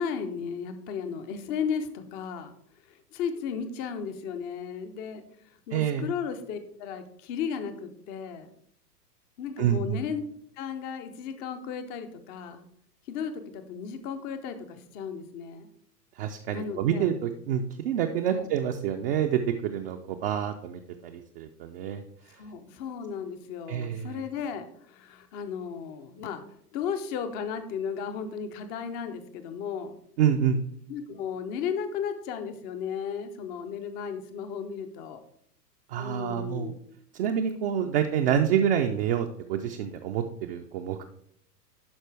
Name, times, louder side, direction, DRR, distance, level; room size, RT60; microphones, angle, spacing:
voice 1, 0.0-2.5 3.1-5.2 5.7-8.5 9.4-10.2 10.6-12.7 13.1-15.7 16.5-17.1 18.3-18.5 22.4-26.4 26.7-29.9 30.9-35.2 35.9-36.8, left 7 dB, 20° left, 9 dB, 0.5 m, -35 dB
voice 2, 5.7-6.1 9.6-10.0 16.2-22.0 22.3-22.4 23.7-24.2 30.2-30.6 35.9-36.7 37.1-41.0, right 9 dB, 40° right, 4 dB, 0.5 m, -27 dB
11.5 x 4.4 x 3.3 m, 0.68 s
hypercardioid pair, 105°, 49 cm